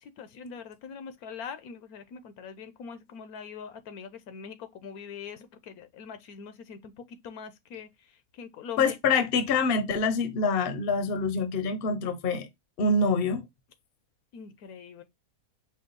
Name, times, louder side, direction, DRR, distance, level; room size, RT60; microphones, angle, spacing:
voice 1, 0.0-9.0 14.3-15.0, left 6 dB, 80° left, 1.2 m, -43 dB
voice 2, 8.8-12.5 12.8-13.4, left 4 dB, 50° left, 0.8 m, -25 dB
5.2 x 2.3 x 3.9 m
omnidirectional pair, 1.6 m